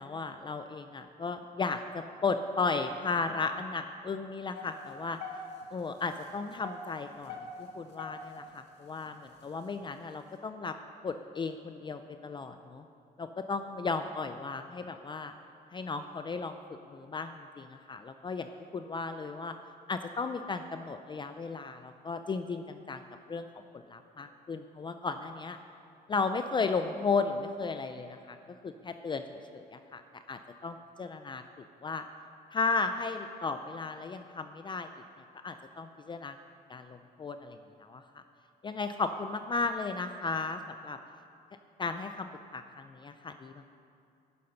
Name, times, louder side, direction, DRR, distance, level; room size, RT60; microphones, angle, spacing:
voice 1, 0.0-5.2 5.7-10.8 11.0-12.8 13.2-15.3 15.7-16.6 16.9-19.5 19.9-23.0 23.3-23.5 23.7-25.6 26.1-28.4 28.6-29.2 29.5-30.0 30.3-32.0 32.5-35.0 35.4-36.4 36.7-38.2 38.6-41.0 41.8-42.3 42.5-43.7, left 4 dB, 25° left, 8 dB, 0.4 m, -35 dB
sound 1, 4.5-5.8 6.3-8.5 9.1-9.2 9.8-9.9, left 5 dB, 80° left, 1.8 m, -43 dB
11.5 x 9.6 x 5.7 m, 2.6 s
cardioid pair, 130°, 18 cm